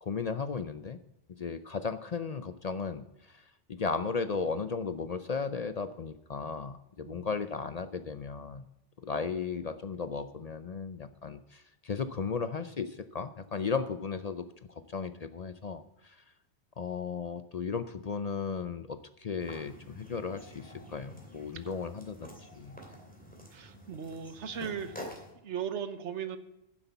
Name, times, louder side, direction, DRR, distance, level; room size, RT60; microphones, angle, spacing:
voice 1, 0.0-1.0 1.4-8.7 9.0-16.2 16.8-22.8, left 5 dB, 45° left, 12 dB, 0.5 m, -35 dB
voice 2, 7.0-7.3 21.6-21.7 23.5-24.9 25.4-26.4, right 7 dB, 90° right, 11 dB, 1.3 m, -37 dB
sound 1, 19.4-25.3, equal, 5° left, 2.5 m, -48 dB
10.0 x 7.8 x 7.0 m, 0.88 s
omnidirectional pair, 1.2 m